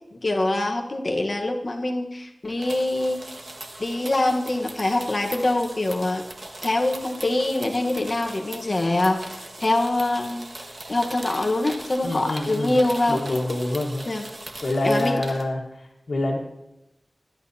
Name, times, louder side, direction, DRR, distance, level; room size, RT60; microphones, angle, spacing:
voice 1, 0.2-3.2 3.8-6.2 6.6-10.5 10.9-13.2 14.1-14.2 14.8-15.2, left 2 dB, 45° left, 3 dB, 1.2 m, -24 dB
sound 1, 2.5-15.4, right 2 dB, 55° right, 1.7 m, -40 dB
voice 2, 12.0-12.8 13.1-14.1 14.6-16.4, left 1 dB, 90° left, -3 dB, 1.5 m, -26 dB
20.5 x 11.5 x 2.8 m, 0.94 s
wide cardioid pair, 75°, 0 cm